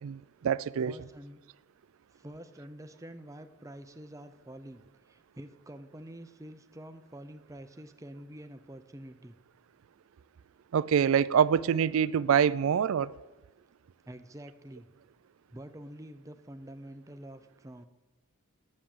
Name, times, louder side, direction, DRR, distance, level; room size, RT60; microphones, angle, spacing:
voice 1, 0.0-0.9 10.7-13.2, right 8 dB, 65° right, 0.3 m, -25 dB
voice 2, 0.8-1.4 2.1-9.4 14.1-14.9 15.5-17.9, right 1 dB, 15° right, 0.5 m, -47 dB
9.9 x 7.4 x 7.1 m
head